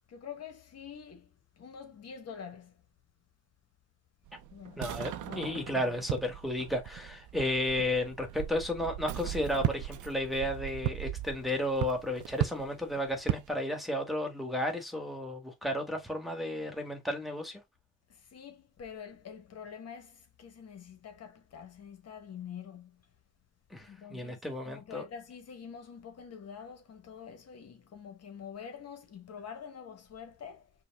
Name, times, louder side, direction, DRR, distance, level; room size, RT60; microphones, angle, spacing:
voice 1, 0.1-2.8 4.5-4.8 5.2-5.6 18.1-23.0 23.8-24.4 24.6-30.7, left 7 dB, 55° left, 1.2 m, -46 dB
sound 1, 4.3-13.5, right 13 dB, 75° right, 0.6 m, -37 dB
voice 2, 4.8-17.6 23.7-25.0, left 1 dB, ahead, 1.5 m, -33 dB
5.2 x 2.3 x 3.5 m
cardioid pair, 90°, 30 cm